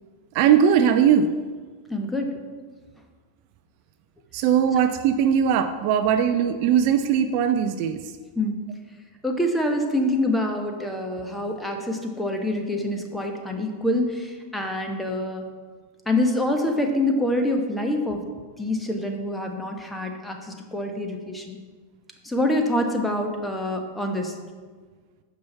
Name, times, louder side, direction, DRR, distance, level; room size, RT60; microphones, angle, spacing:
voice 1, 0.3-1.3 4.3-8.0, right 8 dB, 45° right, 9 dB, 0.5 m, -20 dB
voice 2, 1.9-2.3 8.3-8.6 9.2-15.4 16.0-18.2 18.6-21.6 22.2-24.4, left 1 dB, 5° left, 3 dB, 1.3 m, -26 dB
9.3 x 6.0 x 5.5 m, 1.5 s
figure-of-eight pair, 90°, 0 cm